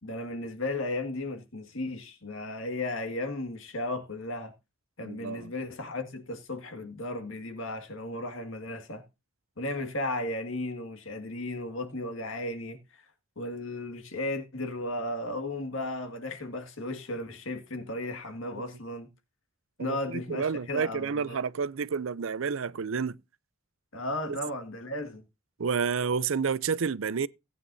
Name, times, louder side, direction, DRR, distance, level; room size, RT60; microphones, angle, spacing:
voice 1, 0.0-4.5 5.0-9.0 9.6-13.0 13.4-19.1 19.8-21.4 23.9-25.2, left 2 dB, 65° left, 2.0 m, -35 dB
voice 2, 5.0-5.5 18.6-18.7 19.8-23.2 24.3-24.4 25.6-27.3, right 5 dB, 70° right, 0.5 m, -30 dB
18.0 x 9.3 x 2.7 m
head